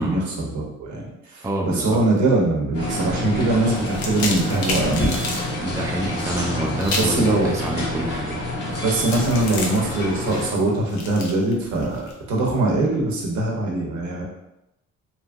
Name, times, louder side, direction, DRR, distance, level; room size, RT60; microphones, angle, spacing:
voice 1, 0.0-5.4 6.9-7.5 8.7-14.2, right 2 dB, 70° right, -2 dB, 0.8 m, -22 dB
voice 2, 1.4-2.0 5.6-8.4 8.7-8.8, right 1 dB, 10° right, 0 dB, 0.4 m, -27 dB
sound 1, 2.7-10.5, left 1 dB, 55° left, 1.0 m, -28 dB
sound 2, 3.8-5.4 6.8-7.2 9.0-12.1, left 2 dB, 75° left, 0.7 m, -30 dB
2.9 x 2.6 x 2.3 m, 0.89 s
cardioid pair, 90°, 30 cm